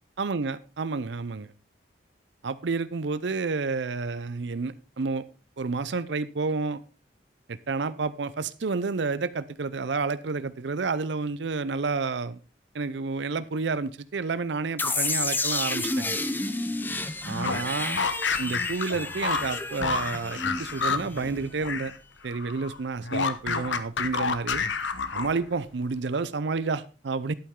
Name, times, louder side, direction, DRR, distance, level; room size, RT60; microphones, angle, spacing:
voice 1, 0.2-1.5 2.4-5.2 5.6-6.8 7.5-12.4 12.7-16.2 17.3-18.0 18.4-21.9 22.2-24.6 25.1-27.3, right 4 dB, 75° right, 15 dB, 0.6 m, -30 dB
sound 1, 14.8-21.6, left 2 dB, 10° left, 0.6 m, -31 dB
sound 2, 17.2-22.0 22.2-25.5, left 5 dB, 90° left, 1.0 m, -30 dB
11.5 x 8.7 x 3.7 m, 0.33 s
head